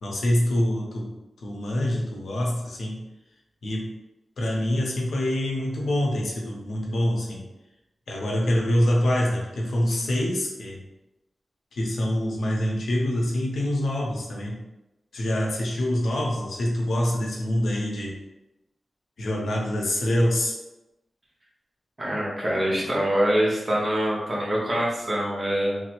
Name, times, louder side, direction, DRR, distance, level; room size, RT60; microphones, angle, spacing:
voice 1, 0.0-3.0 3.6-3.9 4.4-7.5 8.1-10.8 11.7-14.6 15.1-18.2 19.2-20.5, left 1 dB, 85° left, -1 dB, 0.6 m, -25 dB
voice 2, 22.0-25.8, equal, 35° right, -5 dB, 0.9 m, -24 dB
3.2 x 2.0 x 3.0 m, 0.93 s
wide cardioid pair, 100°, 0 cm